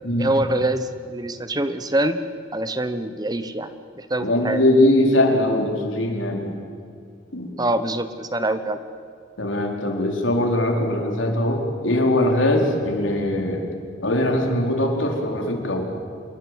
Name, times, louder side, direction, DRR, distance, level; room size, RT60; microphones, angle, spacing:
voice 1, 0.2-2.2 2.5-3.7 4.0-4.6 7.6-8.8, right 1 dB, 20° right, 11 dB, 1.0 m, -24 dB
voice 2, 4.2-6.5 7.3-7.5 9.4-13.7 14.0-15.9, left 1 dB, 75° left, 2 dB, 4.5 m, -21 dB
26.5 x 22.0 x 7.9 m, 2.4 s
head